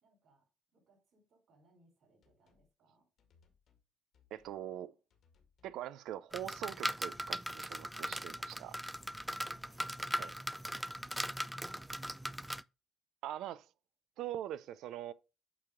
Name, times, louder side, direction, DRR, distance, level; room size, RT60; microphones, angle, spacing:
voice 1, 0.0-3.1 8.3-9.1 9.4-10.1 10.6-12.1, right 2 dB, 55° right, 4.0 m, -70 dB
sound 1, 2.2-2.7 3.2-3.8 4.1-4.6 5.1-5.8 6.1-6.5 7.0-7.7 8.0-8.4 8.9-10.4 10.9-11.1, left 6 dB, 65° left, 1.8 m, -71 dB
voice 2, 4.3-4.9 5.6-8.7 10.2-10.3 13.2-13.7 14.2-15.1, right 11 dB, 80° right, 0.4 m, -42 dB
sound 2, 6.3-12.6, equal, 5° right, 0.3 m, -39 dB
8.4 x 2.9 x 5.0 m
cardioid pair, 90°, 0 cm